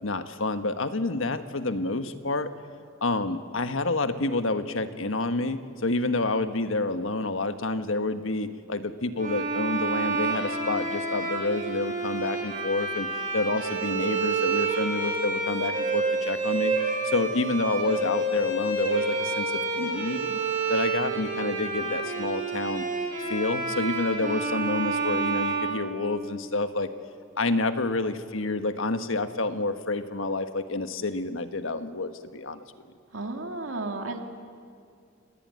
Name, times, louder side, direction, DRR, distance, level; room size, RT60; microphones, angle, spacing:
voice 1, 0.0-2.5 3.0-13.1 13.3-16.7 17.0-20.4 20.7-22.8 23.3-26.9 27.4-32.6, left 2 dB, 75° left, 9 dB, 1.4 m, -28 dB
Bowed string instrument, 9.2-26.4, right 3 dB, 40° right, 6.9 m, -29 dB
voice 2, 33.1-34.2, right 2 dB, 80° right, 4 dB, 2.6 m, -33 dB
27.0 x 19.0 x 9.5 m, 2.4 s
head